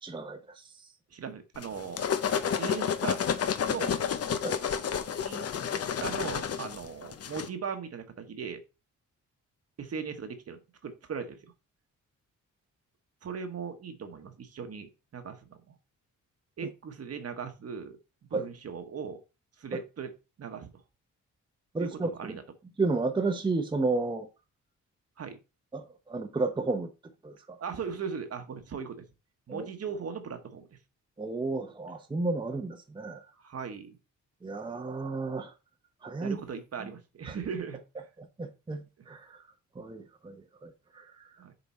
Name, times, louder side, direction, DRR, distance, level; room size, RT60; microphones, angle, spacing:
voice 1, 0.0-0.9 4.4-4.6 18.3-18.5 19.7-19.8 21.7-22.3 22.8-24.3 25.7-26.9 27.2-27.6 29.5-29.7 31.2-33.3 34.4-35.5 36.0-36.4 37.2-37.4 38.2-39.4 39.7-41.3, right 3 dB, 15° right, 0.7 m, -32 dB
voice 2, 1.1-2.0 2.6-3.2 3.7-4.0 5.2-5.5 6.0-8.6 9.8-11.5 13.2-15.8 16.6-18.0 18.3-19.2 19.6-20.1 20.4-20.8 21.8-22.4 25.2-25.4 27.6-29.1 29.5-30.8 33.4-34.0 36.2-37.8 41.4-41.5, right 6 dB, 50° right, 1.2 m, -38 dB
sound 1, 1.6-7.5, left 7 dB, 50° left, 0.7 m, -30 dB
7.2 x 3.9 x 4.2 m
cardioid pair, 100°, 31 cm